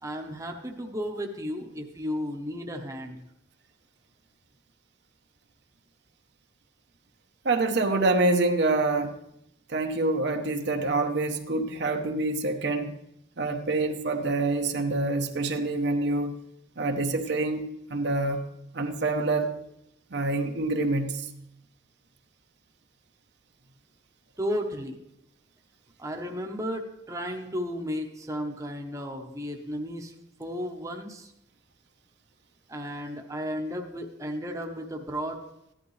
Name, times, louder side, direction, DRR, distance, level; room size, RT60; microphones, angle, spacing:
voice 1, 0.0-3.2 24.4-25.0 26.0-30.1 30.4-31.3 32.7-35.4, equal, 15° right, 2 dB, 0.9 m, -34 dB
voice 2, 7.4-9.1 9.7-12.9 13.4-16.3 16.8-18.4 18.7-19.5 20.1-21.3, right 2 dB, 60° right, 4 dB, 0.9 m, -26 dB
14.5 x 11.0 x 3.2 m, 0.82 s
head